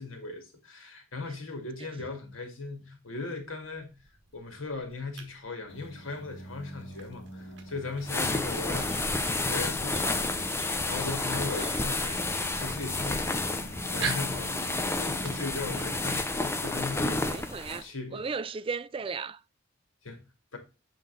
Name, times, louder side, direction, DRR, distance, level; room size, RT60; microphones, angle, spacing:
voice 1, 0.0-3.9 4.3-9.0 9.4-14.6 15.0-18.2 20.0-20.2 20.5-20.6, left 3 dB, 85° left, 2.0 m, -38 dB
sound 1, 3.6-17.5, right 6 dB, 60° right, 1.5 m, -46 dB
sound 2, 5.7-16.1, right 1 dB, 65° left, 2.1 m, -45 dB
sound 3, 8.0-17.8, left 2 dB, 15° left, 0.6 m, -30 dB
voice 2, 8.8-9.1 11.3-12.2 17.2-19.4, right 5 dB, 25° right, 0.4 m, -37 dB
7.3 x 4.0 x 3.8 m
head